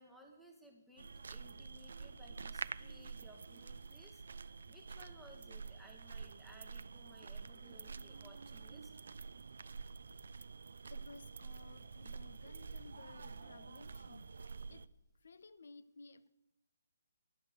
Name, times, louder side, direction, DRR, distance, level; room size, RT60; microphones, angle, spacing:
voice 1, 0.0-8.9, equal, ahead, 1.1 m, -60 dB
sound 1, 1.0-14.9, right 5 dB, 65° right, 0.3 m, -48 dB
voice 2, 10.9-14.9 15.2-16.3, left 4 dB, 60° left, 0.6 m, -57 dB
11.0 x 5.8 x 6.7 m
figure-of-eight pair, 140°, 0 cm